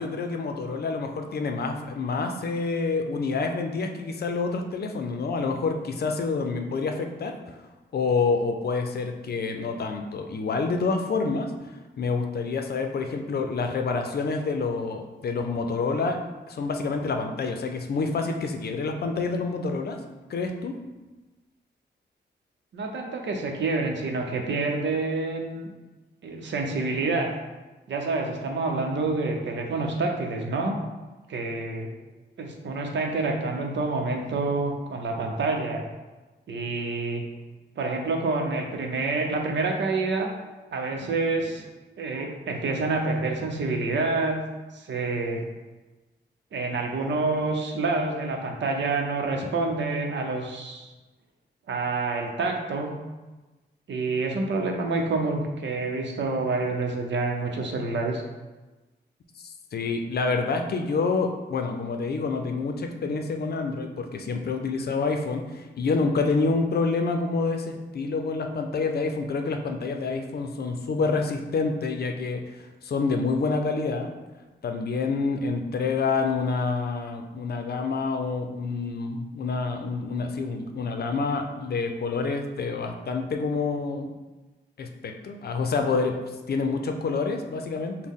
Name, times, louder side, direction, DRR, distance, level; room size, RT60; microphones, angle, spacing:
voice 1, 0.0-7.4 7.9-11.5 12.0-16.2 16.5-20.0 20.3-20.7 59.4-74.1 74.6-84.1 84.8-86.2 86.5-88.0, left 4 dB, 60° left, 5 dB, 0.5 m, -27 dB
voice 2, 22.7-25.7 26.2-27.3 27.9-30.8 31.3-31.9 32.4-35.8 36.5-37.2 37.8-40.3 40.7-41.7 42.0-44.4 44.7-45.4 46.5-50.9 51.7-53.0 53.9-58.2, right 3 dB, 85° right, 2 dB, 0.7 m, -27 dB
6.2 x 2.1 x 3.6 m, 1.2 s
wide cardioid pair, 110°, 18 cm